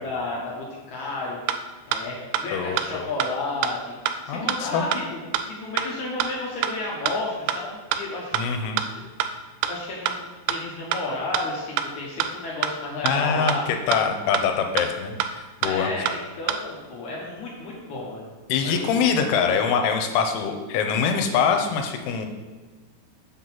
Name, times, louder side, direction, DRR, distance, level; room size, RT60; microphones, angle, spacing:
voice 1, 0.0-4.0 4.2-5.2 5.5-8.5 8.8-8.9 9.3-9.4 9.7-10.2 10.5-13.7 15.6-18.3 18.6-18.9, left 2 dB, 70° left, -4 dB, 1.8 m, -32 dB
sound 1, 1.5-1.6 1.9-2.0 2.3-2.4 2.8-2.9 3.2-3.3 3.6-3.7 4.1-4.2 4.5-4.6 4.9-5.0 5.3-5.4 5.8-5.9 6.2-6.3 6.6-6.7 7.1-7.2 7.5-7.6 7.9-8.0 8.3-8.4 8.8-8.9 9.2-9.3 9.6-9.7 10.1-10.2 10.5-10.6 10.9-11.0 11.3-11.4 11.8-11.9 12.2-12.3 12.6-12.7 13.1-13.2 13.5-13.6 13.9-14.0 14.3-14.4 14.8-14.9 15.2-15.3 15.6-15.7 16.1-16.2 16.5-16.6, right 10 dB, 85° right, 2.4 m, -24 dB
voice 2, 2.5-3.1 4.3-4.9 8.3-8.8 13.0-15.9 18.5-22.3, left 6 dB, 85° left, 5 dB, 2.7 m, -24 dB
7.9 x 3.9 x 5.9 m, 1.4 s
omnidirectional pair, 4.8 m